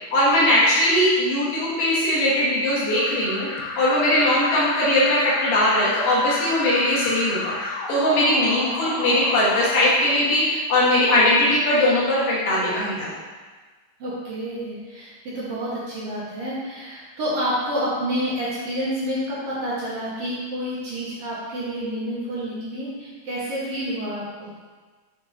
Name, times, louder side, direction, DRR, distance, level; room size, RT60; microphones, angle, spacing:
voice 1, 0.1-3.5 3.8-13.1, left 1 dB, 65° left, -8 dB, 2.7 m, -20 dB
Alarm, 2.7-10.6, left 2 dB, 90° left, 1.8 m, -32 dB
voice 2, 14.0-24.5, equal, 65° right, -8 dB, 1.5 m, -29 dB
7.0 x 3.6 x 4.2 m, 1.4 s
omnidirectional pair, 4.6 m